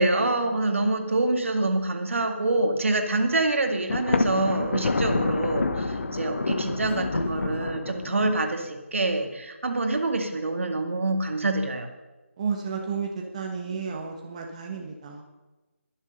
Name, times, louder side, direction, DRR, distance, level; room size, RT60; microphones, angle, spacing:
voice 1, 0.0-11.9, right 2 dB, 65° right, 4 dB, 2.1 m, -26 dB
Thunder, 3.9-8.5, left 3 dB, 65° left, 1.1 m, -27 dB
voice 2, 12.4-15.2, right 5 dB, 25° right, 1 dB, 1.2 m, -32 dB
21.5 x 7.2 x 5.3 m, 1.2 s
figure-of-eight pair, 160°, 8 cm